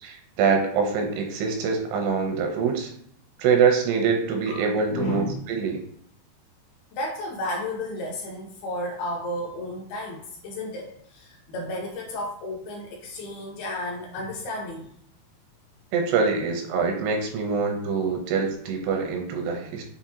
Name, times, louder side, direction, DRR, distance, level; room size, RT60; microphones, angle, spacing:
voice 1, 0.0-2.9 3.4-5.8 15.9-19.8, right 5 dB, 85° right, 3 dB, 2.6 m, -24 dB
voice 2, 4.5-5.5 6.9-14.9, left 1 dB, 80° left, -1 dB, 2.3 m, -33 dB
6.9 x 2.4 x 2.8 m, 0.69 s
omnidirectional pair, 4.9 m